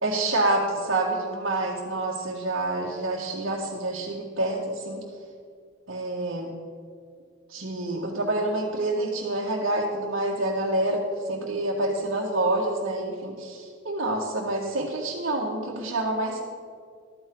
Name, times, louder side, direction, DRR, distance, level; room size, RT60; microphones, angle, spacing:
voice 1, 0.0-5.0 5.9-6.5 7.5-16.4, right 2 dB, 65° right, -6 dB, 1.8 m, -27 dB
14.5 x 13.5 x 3.9 m, 2.2 s
head